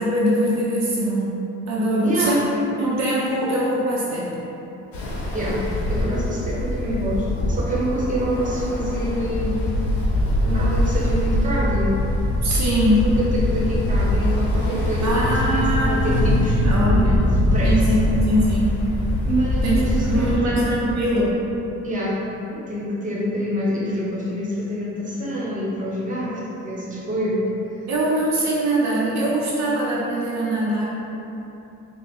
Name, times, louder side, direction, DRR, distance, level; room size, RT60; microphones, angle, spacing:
voice 1, 0.0-1.4 1.7-2.4 2.8-4.3 12.4-13.1 15.0-16.2 16.6-17.2 17.6-18.8 19.6-19.8 20.0-21.3 27.9-30.9, right 1 dB, 65° right, -6 dB, 0.7 m, -22 dB
voice 2, 2.0-2.5 5.3-9.7 10.4-12.0 13.0-17.3 17.5-18.1 19.2-20.6 21.8-22.2 22.5-27.5, equal, 25° right, -5 dB, 1.0 m, -26 dB
Ocean, 4.9-20.4, left 1 dB, 75° left, 0.8 m, -22 dB
5.2 x 2.2 x 2.9 m, 3.0 s
cardioid pair, 90°, 30 cm